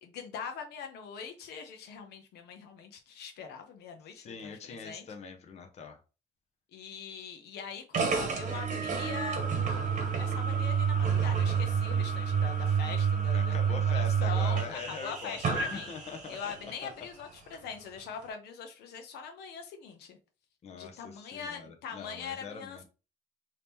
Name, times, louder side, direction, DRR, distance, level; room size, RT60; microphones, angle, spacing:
voice 1, 0.0-5.1 6.7-15.9 16.3-20.2 20.7-22.8, left 6 dB, 75° left, 0.7 m, -42 dB
voice 2, 4.1-6.0 13.3-16.4 16.8-16.9 20.6-22.8, left 5 dB, 40° left, 0.7 m, -43 dB
sound 1, 7.9-16.7, right 6 dB, 45° right, 1.0 m, -29 dB
2.8 x 2.8 x 3.5 m
cardioid pair, 110°, 17 cm